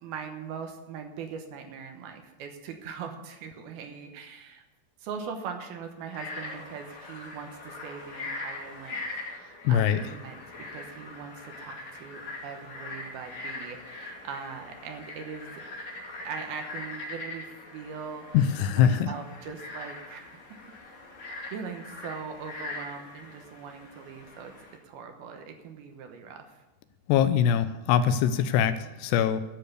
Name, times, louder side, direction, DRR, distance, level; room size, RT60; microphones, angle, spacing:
voice 1, 0.0-4.6 5.0-9.0 9.3-10.4 10.7-15.5 15.9-18.3 18.7-20.2 21.5-24.5 24.9-26.6, right 6 dB, 70° right, 5 dB, 2.8 m, -41 dB
Frog, 6.0-24.8, left 2 dB, 45° left, 3.3 m, -42 dB
voice 2, 9.6-10.0 18.3-19.1 27.1-29.4, left 9 dB, 85° left, 11 dB, 2.7 m, -23 dB
13.0 x 6.6 x 8.1 m, 1.1 s
omnidirectional pair, 4.9 m